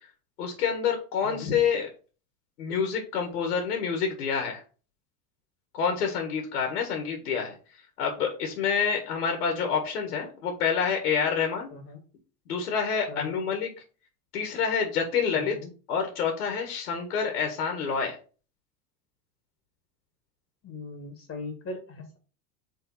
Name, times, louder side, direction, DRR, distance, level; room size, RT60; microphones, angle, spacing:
voice 1, 0.4-1.9 2.6-4.6 5.7-7.5 8.0-11.7 12.5-13.7 14.3-15.6 15.9-18.2, left 6 dB, 80° left, 3 dB, 1.8 m, -27 dB
voice 2, 11.7-12.0 13.1-13.4 15.3-15.7 20.6-22.2, left 3 dB, 30° left, 4 dB, 1.5 m, -39 dB
4.6 x 3.7 x 5.4 m, 0.37 s
hypercardioid pair, 90°, 46 cm